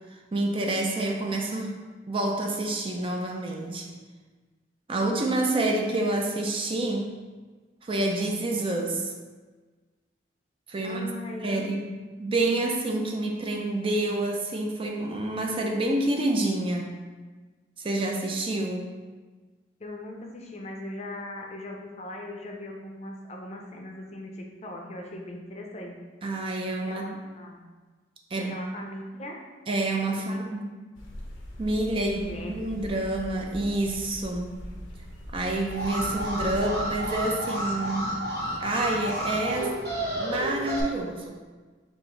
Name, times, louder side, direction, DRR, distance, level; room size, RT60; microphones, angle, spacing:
voice 1, 0.1-1.7 2.1-3.9 4.9-7.1 7.8-9.1 10.7-11.1 11.4-17.0 17.8-18.9 26.2-27.2 28.3-28.6 29.7-30.6 31.6-34.6 35.3-38.2 38.6-39.8 40.2-41.4, right 2 dB, 30° right, 1 dB, 0.4 m, -28 dB
voice 2, 10.8-11.7 19.8-26.0 26.9-27.6 28.4-29.4 30.3-30.4 32.0-32.5, left 1 dB, 35° left, 1 dB, 0.5 m, -39 dB
sound 1, 31.0-37.2, equal, 85° left, 0.7 m, -41 dB
Alarm, 35.7-40.8, equal, 55° right, 1.0 m, -31 dB
4.8 x 2.5 x 3.7 m, 1.4 s
head